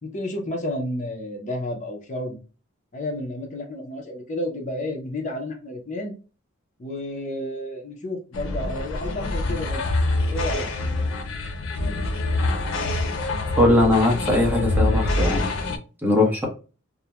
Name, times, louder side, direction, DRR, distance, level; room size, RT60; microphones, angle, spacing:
voice 1, 0.0-2.4 2.9-6.2 6.8-9.9 10.3-10.7, left 1 dB, 35° left, 2 dB, 0.6 m, -31 dB
sound 1, 8.3-15.8, left 2 dB, 85° left, 0.5 m, -25 dB
voice 2, 13.6-15.5 16.0-16.5, left 2 dB, 10° right, -1 dB, 0.8 m, -20 dB
2.4 x 2.1 x 2.8 m, 0.34 s
head